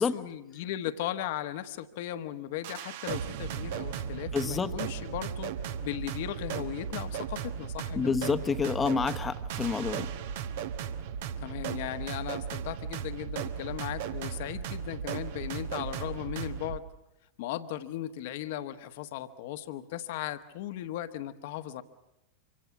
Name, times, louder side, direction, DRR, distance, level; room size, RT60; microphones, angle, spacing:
voice 1, 0.0-5.5 5.8-8.2 11.4-16.8 17.4-21.8, left 12 dB, 50° left, 10 dB, 1.3 m, -37 dB
sound 1, 2.6-16.8, right 8 dB, 50° right, 1.2 m, -36 dB
voice 2, 4.3-4.7 7.9-10.1, left 5 dB, 15° left, 11 dB, 1.2 m, -28 dB
25.5 x 25.5 x 6.1 m, 0.91 s
figure-of-eight pair, 90°, 0 cm